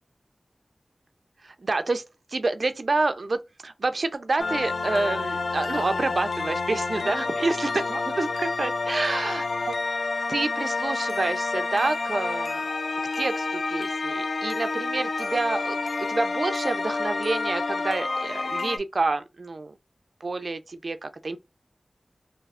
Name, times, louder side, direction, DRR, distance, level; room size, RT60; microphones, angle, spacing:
voice 1, 1.4-2.0 2.3-12.6 13.2-15.8 16.1-19.7 20.2-21.4, right 3 dB, 70° right, 0.3 m, -28 dB
sound 1, 4.4-18.8, left 3 dB, 85° left, 0.3 m, -29 dB
2.7 x 2.3 x 3.4 m
wide cardioid pair, 55°, 0 cm